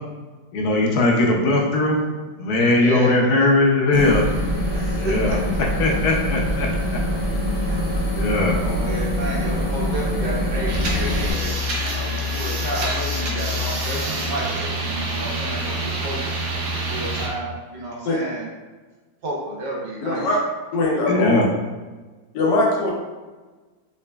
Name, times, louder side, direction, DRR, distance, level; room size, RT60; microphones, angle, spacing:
voice 1, 0.5-2.0 2.4-4.2 5.0-7.0 8.1-8.6 21.1-21.5, left 2 dB, 70° left, 0 dB, 1.0 m, -20 dB
voice 2, 2.7-3.4 4.7-5.4 7.7-7.8 8.6-11.5 11.8-16.1 16.9-18.4 19.2-20.2, right 1 dB, 85° right, -4 dB, 1.6 m, -31 dB
sound 1, 3.9-11.3, equal, 40° left, 0.9 m, -24 dB
sound 2, 10.7-17.3, equal, 65° right, 1.0 m, -26 dB
voice 3, 20.0-20.4 20.7-21.4 22.3-22.9, left 2 dB, 85° left, -2 dB, 1.5 m, -21 dB
3.9 x 3.3 x 2.2 m, 1.3 s
omnidirectional pair, 1.8 m